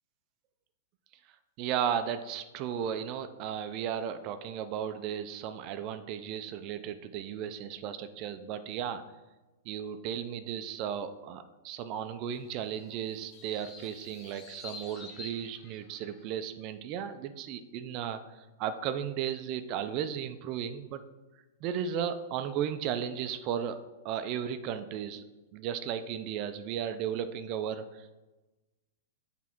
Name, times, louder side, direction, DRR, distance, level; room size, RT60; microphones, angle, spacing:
voice 1, 1.6-9.0 9.7-21.0 21.6-23.8 24.0-25.2 25.5-28.2, right 9 dB, 40° right, 10 dB, 0.4 m, -35 dB
sound 1, 12.3-16.3, left 3 dB, 30° left, 0.8 m, -49 dB
6.3 x 3.5 x 4.4 m, 1.1 s
hypercardioid pair, 135°, 0 cm